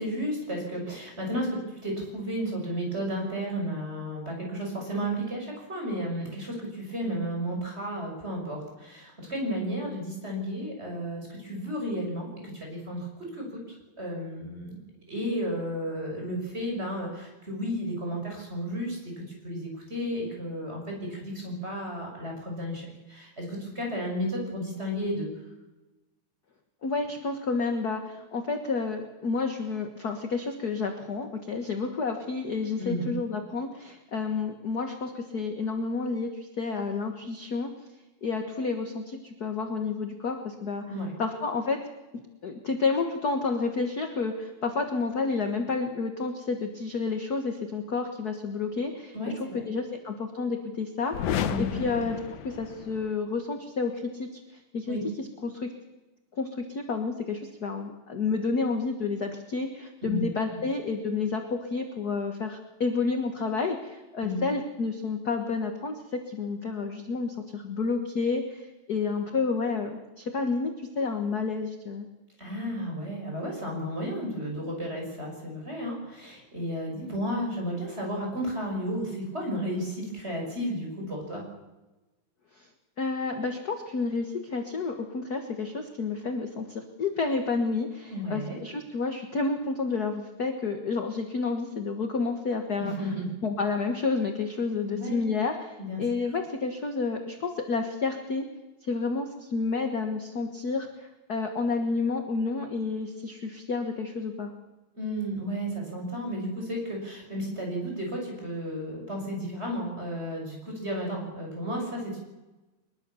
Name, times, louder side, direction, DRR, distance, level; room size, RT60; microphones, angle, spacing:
voice 1, 0.0-13.6 14.0-14.8 15.1-25.3 32.8-33.1 40.9-41.1 49.1-49.6 51.5-52.0 54.9-55.0 60.0-60.3 64.2-64.4 72.4-81.5 88.1-88.6 92.8-93.3 94.9-95.2 95.8-96.0 104.9-112.2, equal, 15° right, 0 dB, 6.4 m, -33 dB
voice 2, 26.8-37.7 38.2-40.8 41.2-41.8 42.1-49.1 49.4-52.2 52.4-54.4 54.7-55.0 55.4-55.7 56.3-72.1 82.5-82.7 83.0-92.9 93.4-98.4 98.8-104.5, left 4 dB, 45° left, 5 dB, 1.3 m, -30 dB
sound 1, 51.1-53.1, left 9 dB, 65° left, 2.3 m, -32 dB
23.0 x 21.5 x 7.2 m, 1.1 s
omnidirectional pair, 3.8 m